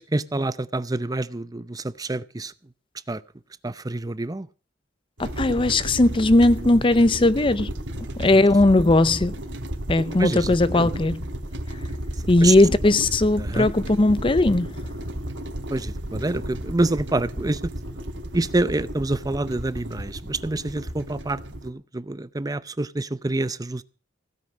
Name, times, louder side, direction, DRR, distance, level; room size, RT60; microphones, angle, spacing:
voice 1, 0.0-2.5 3.1-3.2 3.6-4.5 10.2-10.9 12.2-12.6 13.4-13.7 15.7-17.7 18.3-23.8, right 2 dB, 20° right, 0.6 m, -27 dB
voice 2, 5.2-7.7 8.2-9.3 9.9-11.2 12.3-14.7, left 2 dB, 25° left, 0.6 m, -18 dB
sound 1, 5.2-21.7, right 1 dB, 80° right, 2.5 m, -33 dB
16.5 x 9.6 x 6.1 m
head